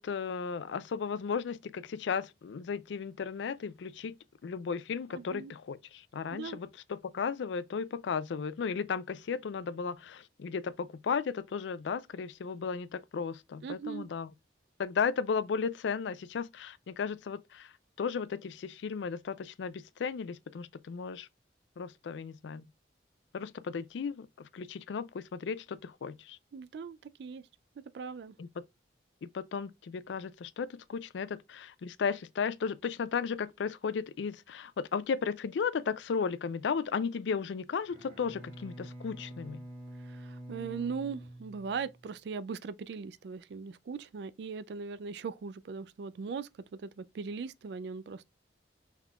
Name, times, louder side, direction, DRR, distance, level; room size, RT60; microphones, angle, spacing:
voice 1, 0.0-4.1 4.4-14.3 14.8-17.7 18.0-21.3 21.8-22.7 23.3-26.4 28.4-28.5 29.3-39.6, left 6 dB, 85° left, 0.4 m, -35 dB
voice 2, 5.1-5.5 6.3-6.6 13.6-14.1 26.5-27.4 27.8-28.4 40.0-48.2, right 5 dB, 70° right, 0.3 m, -39 dB
Bowed string instrument, 37.8-42.1, right 1 dB, 35° right, 1.9 m, -47 dB
5.5 x 3.6 x 2.3 m
head